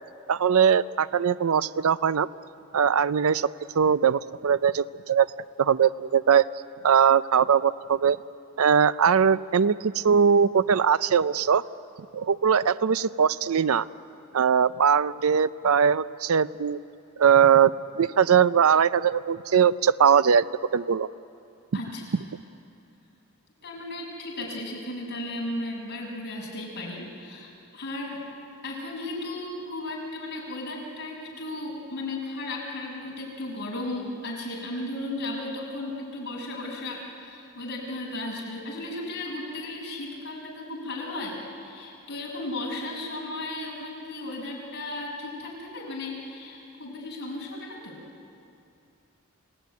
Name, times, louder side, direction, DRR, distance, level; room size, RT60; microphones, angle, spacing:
voice 1, 0.3-2.3 2.7-3.5 3.8-5.3 5.6-6.5 6.8-8.2 8.6-11.6 12.1-13.9 14.3-16.8 17.2-20.4 20.7-21.1, right 7 dB, 75° right, 16 dB, 0.5 m, -21 dB
voice 2, 21.7-22.0 23.6-28.2 28.6-48.0, left 2 dB, 50° left, -3 dB, 6.2 m, -35 dB
28.5 x 18.0 x 9.4 m, 2.6 s
head